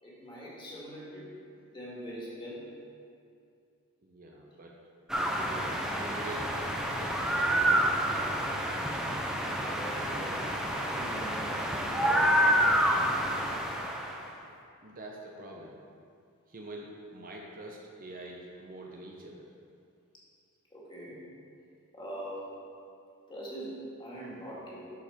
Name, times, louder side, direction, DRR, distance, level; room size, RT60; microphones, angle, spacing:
voice 1, 0.0-1.3 1.7-2.6 9.7-10.3 10.7-11.7 11.9-13.0 20.7-21.2 21.9-22.5 23.3-24.9, right 1 dB, 20° left, -6 dB, 2.1 m, -42 dB
voice 2, 4.0-4.8 5.1-6.5 7.0-7.2 7.6-8.4 14.8-15.8 16.5-19.5, right 1 dB, 40° right, -1 dB, 0.8 m, -45 dB
sound 1, 5.1-14.3, equal, 5° right, 0.6 m, -28 dB
11.0 x 5.0 x 4.4 m, 2.4 s
head